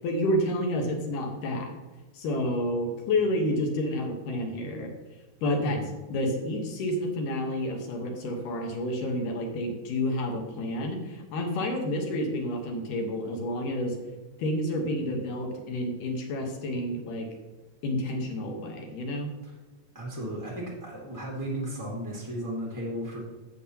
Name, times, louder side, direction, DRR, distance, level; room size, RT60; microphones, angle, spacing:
voice 1, 0.0-1.7 2.1-4.9 5.4-5.8 6.1-14.0 14.4-17.3 17.8-19.3, left 1 dB, 80° left, 2 dB, 2.8 m, -29 dB
voice 2, 19.9-23.2, right 1 dB, 15° right, -3 dB, 0.6 m, -35 dB
11.5 x 7.8 x 2.9 m, 1.2 s
omnidirectional pair, 3.7 m